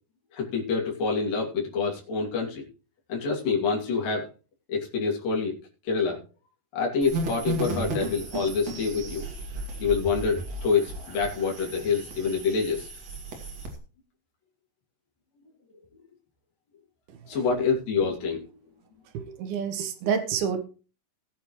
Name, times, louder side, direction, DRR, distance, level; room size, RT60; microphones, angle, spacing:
voice 1, 0.3-2.7 3.1-4.3 4.7-5.5 5.8-6.2 6.7-9.2 9.8-12.9 17.3-18.4, left 5 dB, 70° left, -2 dB, 4.5 m, -26 dB
sound 1, 7.0-13.8, right 2 dB, 50° right, 3.4 m, -35 dB
voice 2, 19.1-20.7, right 7 dB, 85° right, 7 dB, 3.2 m, -29 dB
18.5 x 8.8 x 3.2 m, 0.35 s
omnidirectional pair, 4.2 m